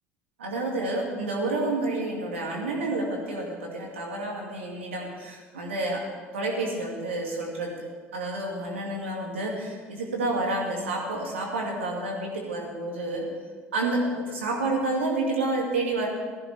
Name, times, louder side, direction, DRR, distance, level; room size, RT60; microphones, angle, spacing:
voice 1, 0.4-6.0 6.3-7.8 8.1-13.2 13.7-16.1, right 2 dB, 75° right, -1 dB, 2.5 m, -29 dB
17.5 x 14.5 x 3.5 m, 1.5 s
figure-of-eight pair, 60°, 7 cm